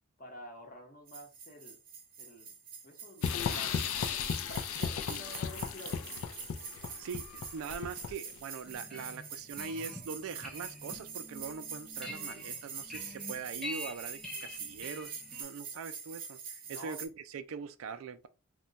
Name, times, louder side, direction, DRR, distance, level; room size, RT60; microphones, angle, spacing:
voice 1, 0.2-1.8 2.2-2.6 2.8-4.2 4.5-6.2 16.6-17.0, left 1 dB, 35° left, 0.8 m, -49 dB
sound 1, 1.1-17.1, right 6 dB, 40° right, 0.7 m, -45 dB
sound 2, 3.2-8.4, left 7 dB, 70° left, 0.4 m, -35 dB
voice 2, 6.7-18.3, right 5 dB, 70° right, 0.3 m, -42 dB
sound 3, 8.6-15.4, left 1 dB, ahead, 0.5 m, -46 dB
2.3 x 2.1 x 3.9 m
head